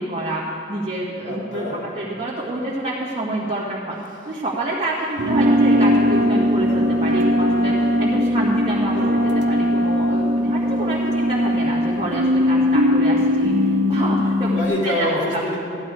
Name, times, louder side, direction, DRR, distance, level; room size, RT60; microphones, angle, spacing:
voice 1, 0.0-1.6 1.9-4.0 4.3-9.0 9.5-14.5 14.8-15.4, right 1 dB, 25° right, -8 dB, 1.8 m, -27 dB
voice 2, 1.3-1.8 8.9-9.4 14.4-15.6, left 1 dB, 70° left, -5 dB, 3.2 m, -26 dB
Wind instrument woodwind instrument, 5.2-12.1, right 1 dB, 45° right, 0.6 m, -21 dB
sound 1, 5.2-14.6, left 2 dB, 65° right, 1.0 m, -22 dB
14.5 x 11.0 x 4.7 m, 2.4 s
head